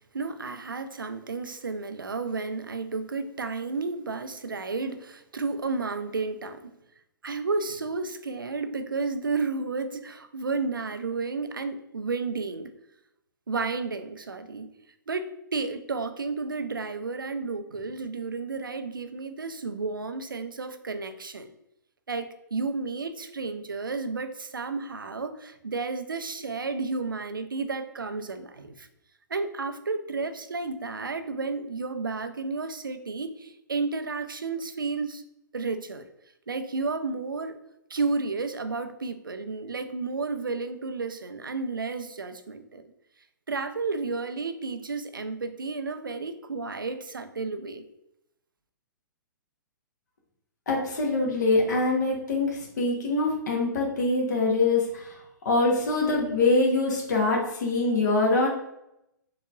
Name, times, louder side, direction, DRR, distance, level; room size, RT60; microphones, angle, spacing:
voice 1, 0.1-6.7 7.2-12.7 13.5-14.7 15.1-21.5 22.1-28.9 29.3-35.2 35.5-36.0 36.5-37.6 37.9-42.8 43.5-47.8, right 4 dB, 85° right, 8 dB, 0.4 m, -32 dB
voice 2, 50.7-55.2 55.4-58.5, left 3 dB, 60° left, -1 dB, 0.9 m, -24 dB
3.9 x 2.8 x 2.3 m, 0.84 s
figure-of-eight pair, 115°, 11 cm